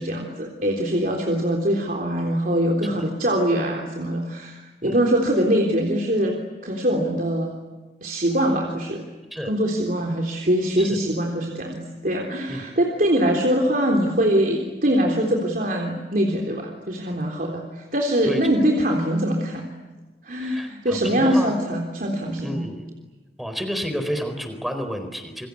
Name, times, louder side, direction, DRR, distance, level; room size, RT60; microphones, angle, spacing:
voice 1, 0.0-6.4 6.6-7.6 8.0-9.1 9.5-19.7 20.2-22.6, equal, 50° right, 1 dB, 3.6 m, -23 dB
voice 2, 20.3-21.5 22.4-22.9 23.4-25.5, equal, ahead, 7 dB, 4.3 m, -30 dB
28.5 x 24.0 x 8.5 m, 1.2 s
head